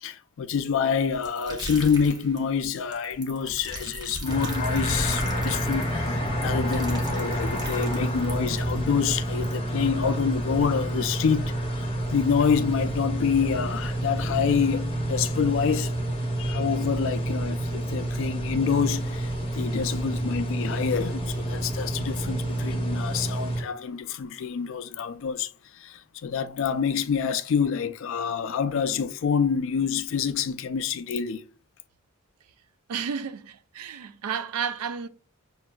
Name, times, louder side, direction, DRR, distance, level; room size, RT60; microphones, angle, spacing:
voice 1, 0.0-15.9 16.4-31.4, left 6 dB, 60° left, 0.3 m, -27 dB
sound 1, 1.1-8.8, right 1 dB, 20° right, 0.7 m, -38 dB
sound 2, 4.2-23.6, right 1 dB, 25° left, 0.7 m, -29 dB
voice 2, 32.9-35.1, right 7 dB, 90° right, 0.4 m, -32 dB
5.9 x 2.5 x 2.2 m
head